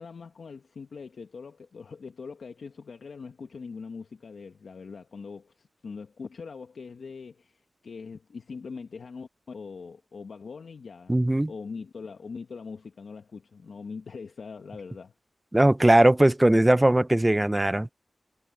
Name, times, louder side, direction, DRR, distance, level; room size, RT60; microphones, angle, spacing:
voice 1, 0.0-11.2 11.5-15.1, left 5 dB, 85° left, 1.2 m, -42 dB
voice 2, 11.1-11.5 15.5-17.9, right 1 dB, 20° right, 0.5 m, -19 dB
cardioid pair, 55°, 0 cm